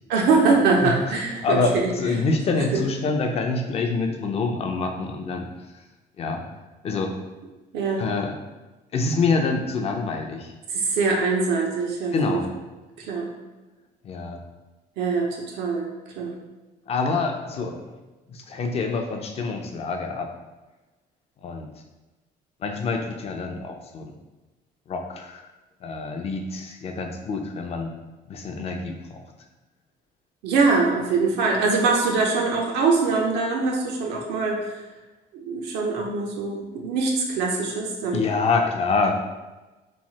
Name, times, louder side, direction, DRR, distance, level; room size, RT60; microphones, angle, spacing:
voice 1, 0.1-1.9 2.5-2.8 7.7-8.1 10.7-12.4 13.0-13.3 15.0-16.4 30.4-34.8 35.3-38.2, right 4 dB, 85° right, -1 dB, 0.5 m, -23 dB
voice 2, 0.8-1.1 1.4-5.8 6.2-6.5 6.8-7.2 8.0-8.3 8.9-10.5 12.1-12.6 14.0-14.5 16.9-17.8 18.3-20.3 21.4-21.7 22.6-24.1 24.9-25.5 25.8-27.9 28.3-29.2 38.1-39.2, left 3 dB, 35° left, 4 dB, 0.4 m, -26 dB
3.0 x 2.0 x 2.8 m, 1.2 s
cardioid pair, 110°, 17 cm